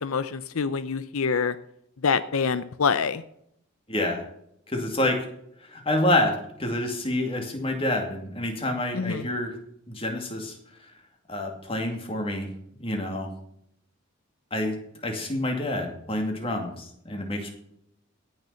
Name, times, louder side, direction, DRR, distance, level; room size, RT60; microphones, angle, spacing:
voice 1, 0.0-1.6 2.0-3.2 8.9-9.3, left 5 dB, 80° left, 13 dB, 0.6 m, -26 dB
voice 2, 3.9-4.2 4.7-5.2 5.6-9.5 9.9-10.6 11.3-12.5 12.8-13.3 14.5-14.8 15.0-17.5, left 1 dB, 25° left, 3 dB, 2.4 m, -27 dB
17.0 x 6.7 x 5.7 m, 0.73 s
head